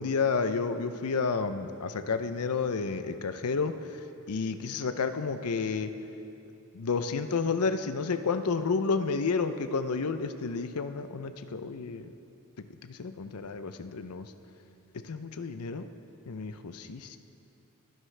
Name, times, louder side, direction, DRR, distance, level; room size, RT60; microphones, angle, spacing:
voice 1, 0.0-3.7 4.3-5.9 6.7-12.1 12.9-14.3 15.1-15.9 16.3-17.2, left 4 dB, 85° left, 9 dB, 0.6 m, -30 dB
22.5 x 11.0 x 3.3 m, 2.8 s
head